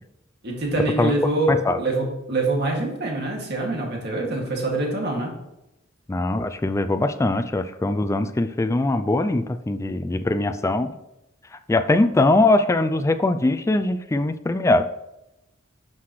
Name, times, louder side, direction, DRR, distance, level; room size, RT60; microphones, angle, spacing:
voice 1, 0.4-5.3, right 2 dB, 55° right, -1 dB, 2.3 m, -25 dB
voice 2, 1.5-1.8 6.1-10.9 11.5-14.9, left 2 dB, 15° left, 9 dB, 0.3 m, -21 dB
11.5 x 5.8 x 3.2 m, 0.90 s
head